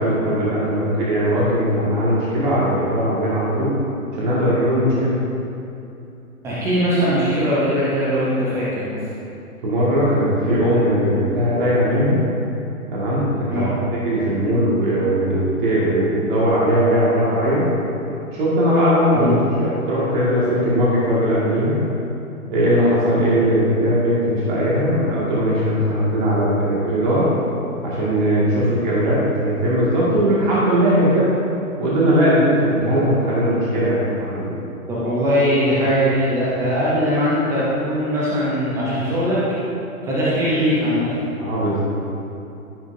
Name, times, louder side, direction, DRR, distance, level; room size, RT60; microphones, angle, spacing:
voice 1, 0.0-3.7 4.2-5.2 9.6-12.2 12.9-17.7 18.3-21.8 22.5-27.3 27.8-31.3 31.8-34.5 41.4-41.8, equal, 30° right, -8 dB, 2.1 m, -19 dB
voice 2, 6.4-9.0 13.5-13.7 19.1-19.3 34.9-39.4 40.0-41.1, equal, 5° right, -8 dB, 0.6 m, -20 dB
15.0 x 5.9 x 2.7 m, 2.8 s
figure-of-eight pair, 130°, 44 cm